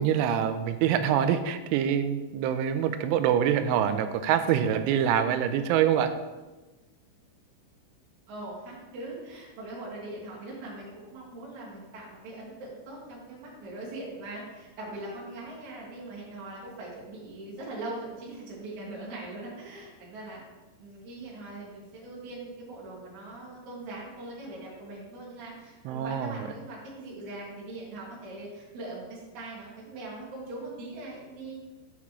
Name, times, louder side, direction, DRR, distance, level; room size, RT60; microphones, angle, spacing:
voice 1, 0.0-6.1 25.9-26.5, right 9 dB, 85° right, 10 dB, 3.0 m, -25 dB
voice 2, 8.3-20.4 20.8-31.6, right 2 dB, 50° right, -6 dB, 2.9 m, -41 dB
8.4 x 5.9 x 3.1 m, 1.2 s
omnidirectional pair, 5.5 m